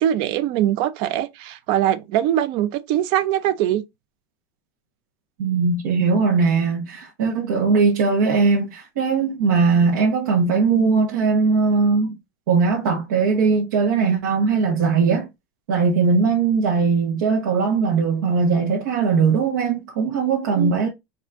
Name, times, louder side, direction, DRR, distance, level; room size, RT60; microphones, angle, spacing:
voice 1, 0.0-3.8 20.6-20.7, right 11 dB, 55° right, 0.5 m, -22 dB
voice 2, 5.4-12.1 12.5-15.3 15.7-20.9, right 5 dB, 90° right, 1.2 m, -19 dB
4.1 x 2.7 x 3.5 m
supercardioid pair, 135°, 10 cm